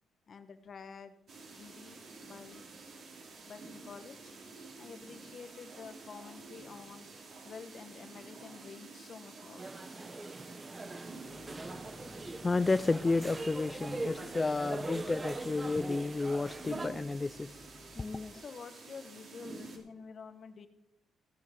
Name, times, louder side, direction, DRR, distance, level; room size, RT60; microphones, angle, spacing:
voice 1, 0.3-1.2 1.5-2.7 3.4-4.3 4.8-7.1 7.4-9.7 18.3-20.7, left 5 dB, 45° left, 1.1 m, -49 dB
sound 1, 1.3-19.8, right 3 dB, 60° right, 2.8 m, -50 dB
sound 2, 9.6-16.9, right 2 dB, 25° right, 0.9 m, -42 dB
voice 2, 11.6-17.7 18.0-18.3, left 3 dB, 25° left, 0.3 m, -32 dB
16.5 x 6.6 x 5.8 m
cardioid pair, 90°, 0 cm